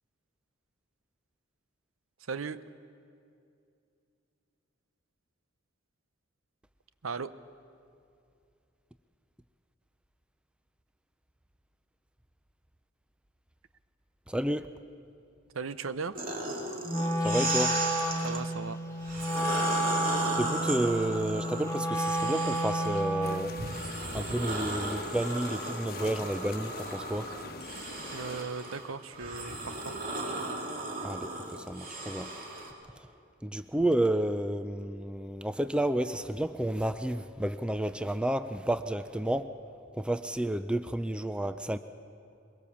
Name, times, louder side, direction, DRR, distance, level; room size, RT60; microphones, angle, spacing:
voice 1, 2.3-2.6 7.0-7.3 15.5-16.2 18.2-18.8 28.1-29.9, right 5 dB, 90° right, 14 dB, 0.8 m, -37 dB
voice 2, 14.3-14.7 17.2-17.8 20.4-23.5 24.1-27.3 31.0-32.3 33.4-39.5 40.0-41.8, right 1 dB, 5° right, 11 dB, 0.4 m, -31 dB
sound 1, 16.1-18.4 19.0-23.1 23.6-32.7, right 2 dB, 45° right, 2.6 m, -36 dB
Wind instrument woodwind instrument, 16.9-23.6, right 1 dB, 15° left, 1.3 m, -31 dB
sound 2, 23.2-28.4, left 4 dB, 50° left, 1.1 m, -44 dB
22.5 x 22.5 x 7.2 m, 2.5 s
head